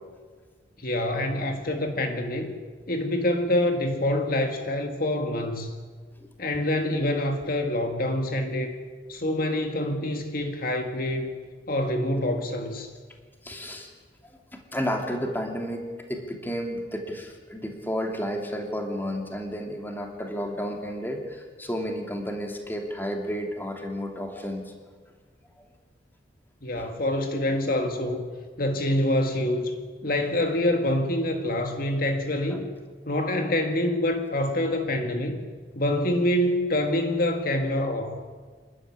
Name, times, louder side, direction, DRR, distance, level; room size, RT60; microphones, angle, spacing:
voice 1, 0.8-2.5 2.9-5.7 6.4-8.8 9.1-11.3 11.7-12.9 26.6-28.3 28.6-29.8 30.0-32.7 33.1-35.4 35.7-38.2, left 1 dB, 55° left, 4 dB, 2.0 m, -26 dB
voice 2, 13.4-13.9 14.2-24.7 26.7-26.9 32.5-32.6, equal, 10° left, 2 dB, 2.8 m, -32 dB
28.0 x 12.0 x 9.9 m, 1.5 s
head